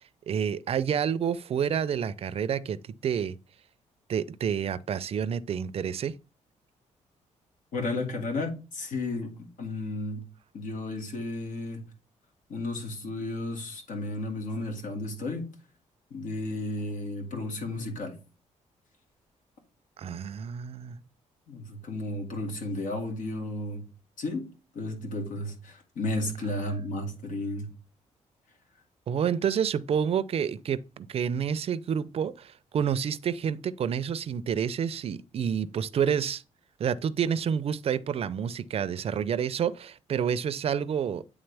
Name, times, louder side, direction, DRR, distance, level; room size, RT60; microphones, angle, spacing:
voice 1, 0.3-3.3 4.1-6.1 20.0-21.0 29.1-36.4 36.8-41.2, right 8 dB, 50° right, 0.4 m, -29 dB
voice 2, 7.7-10.2 10.5-11.8 12.5-15.5 16.1-18.2 21.5-23.8 24.2-27.7, left 2 dB, 85° left, 2.0 m, -33 dB
8.9 x 3.6 x 3.4 m
cardioid pair, 125°, 13 cm